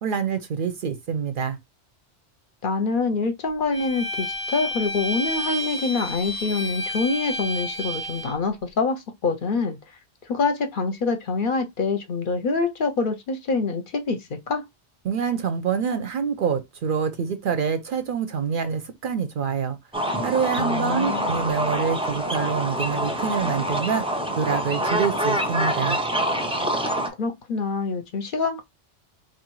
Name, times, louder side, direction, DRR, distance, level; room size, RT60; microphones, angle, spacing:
voice 1, 0.0-1.6 15.0-19.8 20.2-24.0 24.4-26.0, right 6 dB, 60° right, 0.6 m, -26 dB
voice 2, 2.6-9.8 10.3-14.6 20.6-21.3 27.2-28.6, left 4 dB, 55° left, 0.7 m, -25 dB
Bowed string instrument, 3.7-8.3, left 1 dB, 20° left, 0.8 m, -30 dB
sound 1, 19.9-27.1, right 1 dB, 10° right, 0.3 m, -26 dB
4.3 x 2.5 x 3.0 m
omnidirectional pair, 1.1 m